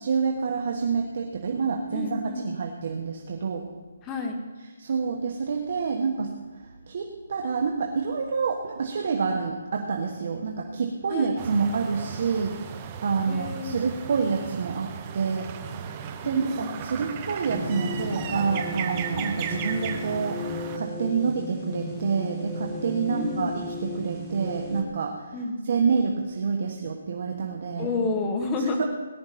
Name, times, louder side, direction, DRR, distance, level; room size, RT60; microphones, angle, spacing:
voice 1, 0.0-3.7 4.8-6.3 6.9-15.5 16.2-20.4 20.7-23.5 23.8-25.3 25.7-28.1 28.8-28.9, right 5 dB, 45° right, 1 dB, 1.3 m, -27 dB
voice 2, 1.9-2.5 4.0-4.3 11.1-11.4 13.3-13.8 16.2-16.8 23.1-23.6 25.3-25.6 27.8-28.8, left 3 dB, 15° left, 3 dB, 1.4 m, -30 dB
sound 1, 11.4-20.8, right 7 dB, 20° right, 0.8 m, -36 dB
sound 2, 17.5-24.8, left 1 dB, 5° right, 1.5 m, -35 dB
18.0 x 11.5 x 4.3 m, 1.3 s
hypercardioid pair, 170°, 0 cm